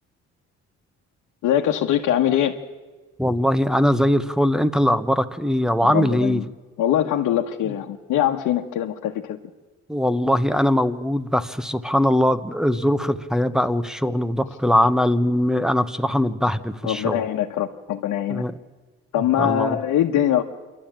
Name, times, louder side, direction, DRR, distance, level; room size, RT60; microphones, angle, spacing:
voice 1, 1.4-2.6 5.8-6.4 6.8-9.4 16.8-18.4 19.1-20.4, left 11 dB, 90° left, 1 dB, 1.3 m, -22 dB
voice 2, 3.2-6.4 9.9-17.2 18.3-18.5 19.4-19.8, equal, ahead, 13 dB, 1.1 m, -21 dB
27.0 x 12.0 x 8.9 m, 1.3 s
cardioid pair, 90°, 30 cm